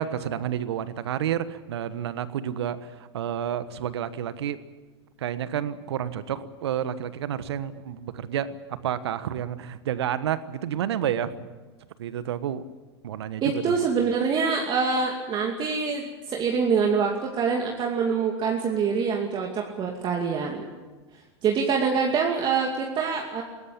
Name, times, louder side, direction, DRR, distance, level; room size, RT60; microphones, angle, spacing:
voice 1, 0.0-2.8 3.1-4.6 5.2-8.5 8.8-11.3 12.0-12.6 13.0-13.8, right 10 dB, 70° right, 14 dB, 1.3 m, -30 dB
voice 2, 13.4-20.6 21.4-23.4, right 5 dB, 35° right, 1 dB, 2.5 m, -25 dB
19.5 x 17.0 x 8.7 m, 1.3 s
hypercardioid pair, 100°, 14 cm